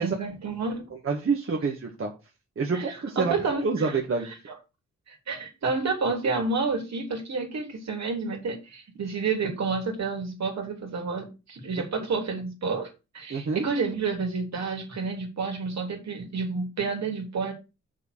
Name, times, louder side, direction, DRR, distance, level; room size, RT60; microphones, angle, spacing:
voice 1, 0.0-0.9 2.7-3.7 5.1-12.9 13.1-17.5, right 4 dB, 65° right, 3.2 m, -30 dB
voice 2, 1.0-2.1 2.6-3.4 3.6-4.3 13.3-13.6, right 4 dB, 45° right, 1.9 m, -27 dB
6.6 x 4.9 x 6.4 m
cardioid pair, 65°, 29 cm